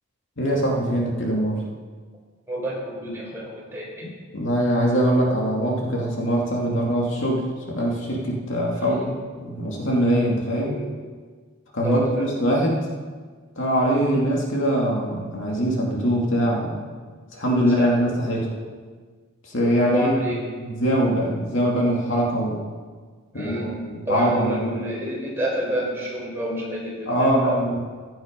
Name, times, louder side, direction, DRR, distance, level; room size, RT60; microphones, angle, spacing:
voice 1, 0.4-1.6 4.3-9.1 9.4-10.7 11.7-12.9 13.6-16.8 17.3-18.5 19.4-22.6 23.3-24.7 27.1-27.9, equal, 65° left, -2 dB, 2.7 m, -23 dB
voice 2, 2.5-4.1 8.7-9.1 10.5-10.9 11.8-12.5 17.7-17.9 19.8-20.4 23.3-23.7 24.1-27.6, right 1 dB, 10° right, -5 dB, 4.8 m, -29 dB
15.5 x 11.0 x 5.4 m, 1.5 s
head